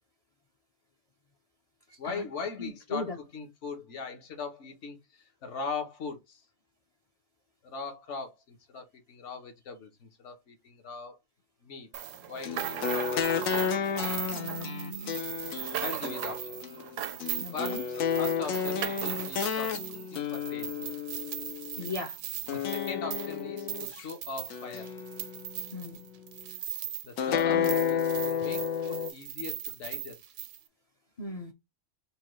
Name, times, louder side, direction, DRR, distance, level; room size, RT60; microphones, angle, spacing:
voice 1, 2.0-6.5 7.6-11.2 11.6-11.9 12.3-13.5 15.8-16.7 17.5-20.7 22.4-24.9 27.0-30.2, left 4 dB, 65° left, 1.3 m, -40 dB
voice 2, 2.6-3.2 14.3-15.2 17.4-17.8 21.8-22.2 25.7-26.0 27.5-27.7 31.2-31.5, left 2 dB, 45° left, 0.5 m, -37 dB
sound 1, 11.9-27.1 27.4-30.6, right 11 dB, 75° right, 0.9 m, -38 dB
sound 2, 12.4-21.9 22.5-24.1 24.5-25.6 27.2-29.1, left 7 dB, 85° left, 1.2 m, -31 dB
5.2 x 2.2 x 3.0 m
omnidirectional pair, 1.4 m